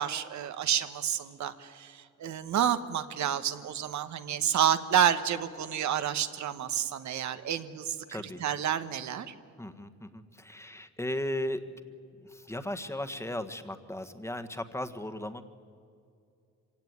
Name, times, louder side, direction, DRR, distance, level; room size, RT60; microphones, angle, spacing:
voice 1, 0.0-8.0 8.4-9.3, right 9 dB, 65° right, 11 dB, 1.3 m, -29 dB
voice 2, 8.1-8.4 9.6-15.4, left 1 dB, 10° left, 8 dB, 1.5 m, -36 dB
25.5 x 17.0 x 9.5 m, 2.4 s
cardioid pair, 90°, 30 cm